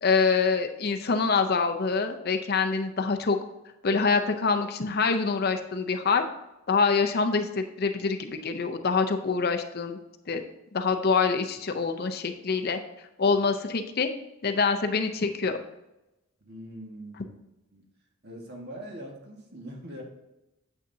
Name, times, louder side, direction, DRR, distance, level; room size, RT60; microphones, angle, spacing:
voice 1, 0.0-3.4 3.8-6.2 6.7-10.0 10.3-10.4 10.7-12.8 13.2-14.1 14.4-15.6, left 4 dB, 45° left, 6 dB, 0.6 m, -25 dB
voice 2, 16.4-17.4 17.7-17.8 18.2-20.0, equal, 50° right, 0 dB, 1.7 m, -42 dB
9.3 x 7.3 x 2.7 m, 0.94 s
head